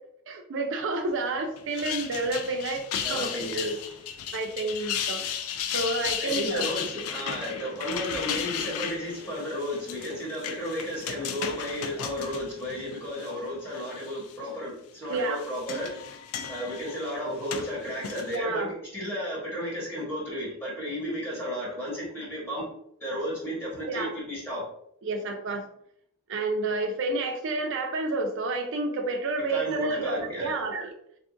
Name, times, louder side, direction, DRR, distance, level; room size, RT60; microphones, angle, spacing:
voice 1, 0.3-2.8 3.1-3.3 4.3-5.2 5.7-6.7 15.1-15.4 18.3-18.7 23.9-24.1 25.0-25.6 26.3-30.9, right 2 dB, 60° right, 4 dB, 0.5 m, -29 dB
sound 1, 1.6-13.3 13.7-14.3 15.2-18.4, left 8 dB, 75° left, 0.3 m, -35 dB
voice 2, 3.0-3.9 6.2-15.9 16.5-18.7 18.9-22.6 23.0-24.6 29.5-30.5, equal, 10° left, -7 dB, 1.2 m, -33 dB
2.6 x 2.4 x 2.5 m, 0.70 s
head